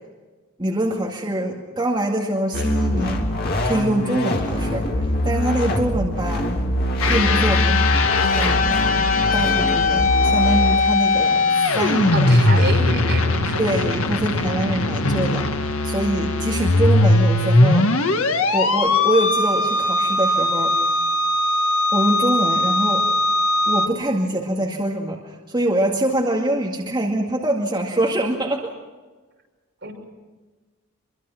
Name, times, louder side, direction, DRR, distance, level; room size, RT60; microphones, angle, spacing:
voice 1, 0.6-3.3 3.6-6.5 7.1-7.9 8.3-8.8 9.3-12.7 13.6-17.9 18.5-20.9 21.9-23.1 23.7-28.7, right 1 dB, 20° right, -1 dB, 2.1 m, -24 dB
sound 1, 2.5-10.8, equal, 45° left, 2.9 m, -23 dB
sound 2, 7.0-23.9, left 2 dB, 70° left, 1.7 m, -19 dB
voice 2, 12.1-13.8 29.8-29.9, right 3 dB, 50° right, 1 dB, 6.3 m, -28 dB
26.0 x 23.5 x 5.9 m, 1.3 s
head